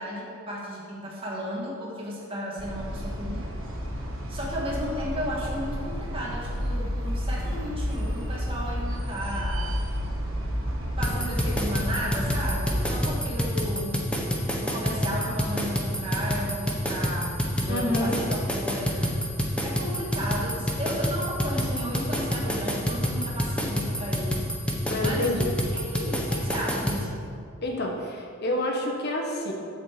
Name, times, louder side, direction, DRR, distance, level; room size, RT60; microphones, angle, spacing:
voice 1, 0.0-3.5 4.3-9.7 11.0-14.0 14.6-17.4 17.7-19.2 19.6-24.4 25.0-25.3 25.7-27.3, equal, 25° right, -4 dB, 1.9 m, -34 dB
sound 1, 2.6-13.1, equal, 65° right, 1.7 m, -31 dB
sound 2, 11.0-27.0, equal, 5° left, 0.9 m, -27 dB
voice 2, 17.7-18.2 24.9-25.6 27.6-29.5, left 1 dB, 50° left, 0 dB, 1.3 m, -28 dB
7.6 x 5.4 x 7.5 m, 2.4 s
head